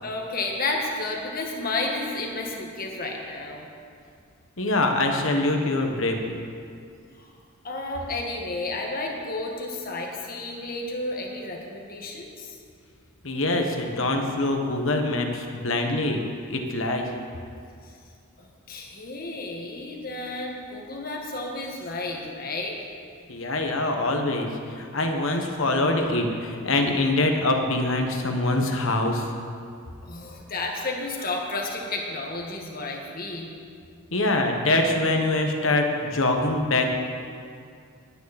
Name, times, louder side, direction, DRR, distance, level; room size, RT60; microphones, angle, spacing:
voice 1, 0.0-3.7 7.2-7.3 7.6-12.6 18.4-22.8 30.0-33.5, left 2 dB, 40° left, 0 dB, 1.8 m, -32 dB
voice 2, 4.6-6.3 13.2-16.2 16.5-17.1 23.3-24.5 24.7-29.3 34.1-36.9, left 2 dB, 65° left, 3 dB, 1.5 m, -24 dB
19.5 x 9.6 x 4.3 m, 2.3 s
head